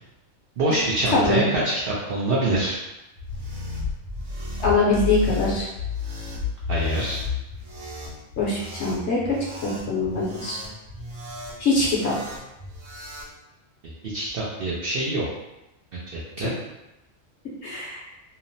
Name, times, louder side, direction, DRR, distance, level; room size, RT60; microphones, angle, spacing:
voice 1, 0.6-2.8 6.7-7.2 14.1-15.2 15.9-16.0 16.4-16.5, right 1 dB, 60° right, -6 dB, 0.6 m, -24 dB
voice 2, 1.1-1.4 4.6-5.7 8.4-9.2 9.6-10.6 11.6-12.1 17.6-18.0, left 3 dB, 60° left, -5 dB, 0.9 m, -23 dB
sound 1, 3.1-13.3, left 5 dB, 90° right, 1.1 m, -33 dB
2.8 x 2.0 x 2.6 m, 0.95 s
omnidirectional pair, 1.4 m